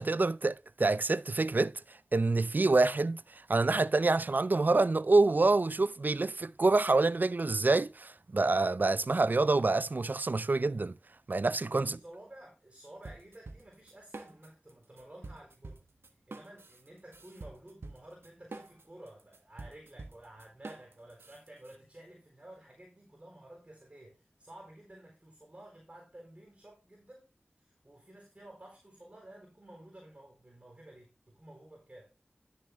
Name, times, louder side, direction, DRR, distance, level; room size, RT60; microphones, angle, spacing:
voice 1, 0.0-10.9 11.3-12.0, right 3 dB, 50° right, 0.4 m, -27 dB
voice 2, 11.8-15.8 16.3-27.3 27.6-32.1, right 1 dB, 30° right, 4.0 m, -53 dB
sound 1, 13.0-14.7 15.0-21.8, right 3 dB, 85° right, 1.2 m, -47 dB
11.5 x 6.6 x 3.5 m
wide cardioid pair, 50°, 4 cm